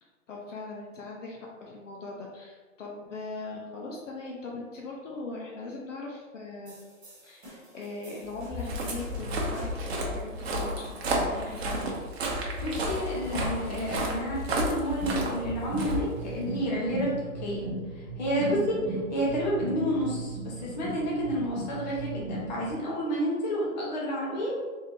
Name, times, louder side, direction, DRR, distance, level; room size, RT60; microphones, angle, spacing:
voice 1, 0.3-6.7 7.2-12.0 18.4-18.7, left 3 dB, 60° left, -2 dB, 0.8 m, -40 dB
sound 1, 6.7-10.0, equal, 25° right, 1.5 m, -45 dB
Walk footsteps, 8.3-16.6, right 1 dB, 50° right, 0.8 m, -32 dB
voice 2, 12.6-17.7 18.2-18.6 19.1-24.5, equal, 30° left, -5 dB, 1.0 m, -30 dB
sound 2, 15.0-22.7, right 2 dB, 5° right, 1.2 m, -37 dB
3.7 x 3.6 x 2.7 m, 1.3 s
hypercardioid pair, 170°, 42 cm